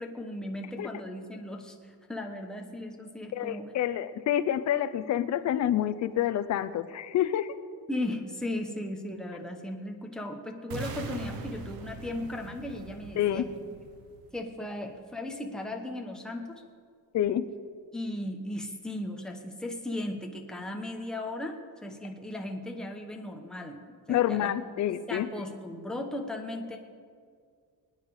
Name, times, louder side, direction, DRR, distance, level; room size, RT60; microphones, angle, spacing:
voice 1, 0.0-3.7 7.9-13.5 14.3-16.6 17.9-24.5 25.1-26.8, left 1 dB, ahead, 2 dB, 1.0 m, -37 dB
voice 2, 3.3-7.5 13.2-13.5 17.1-17.5 24.1-25.4, left 11 dB, 40° left, 12 dB, 0.6 m, -28 dB
sound 1, 10.7-14.7, right 5 dB, 55° right, 1.2 m, -42 dB
25.0 x 9.3 x 4.8 m, 2.1 s
cardioid pair, 175°, 43 cm